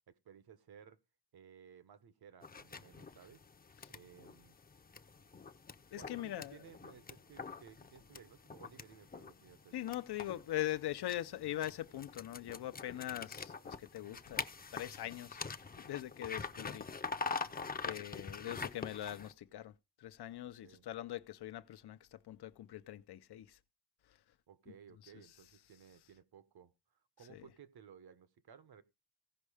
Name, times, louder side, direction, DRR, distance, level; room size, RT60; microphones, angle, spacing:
voice 1, 0.1-1.0 1.3-3.5 3.9-4.5 5.9-9.7 20.6-20.9 24.5-26.7 27.2-28.8, right 8 dB, 70° right, 1.2 m, -58 dB
sound 1, 2.4-19.3, left 4 dB, 25° left, 0.6 m, -45 dB
voice 2, 5.9-6.6 9.7-14.5 14.7-15.4 15.8-16.9 17.8-19.7 20.0-23.6 25.0-25.1 27.3-27.4, left 13 dB, 75° left, 0.7 m, -42 dB
16.0 x 5.4 x 4.9 m
wide cardioid pair, 130°, 39 cm